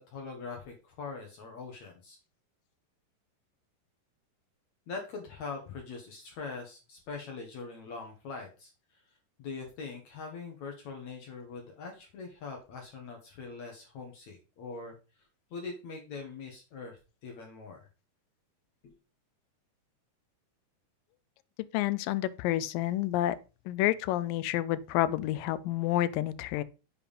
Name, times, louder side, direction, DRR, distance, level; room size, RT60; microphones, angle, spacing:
voice 1, 0.0-2.2 4.9-9.0 9.4-14.9 15.5-17.9 18.8-18.9, left 4 dB, 60° left, 2.3 m, -42 dB
voice 2, 21.7-23.4 23.7-26.6, left 14 dB, 80° left, 2.0 m, -29 dB
7.2 x 4.6 x 5.2 m
omnidirectional pair, 4.4 m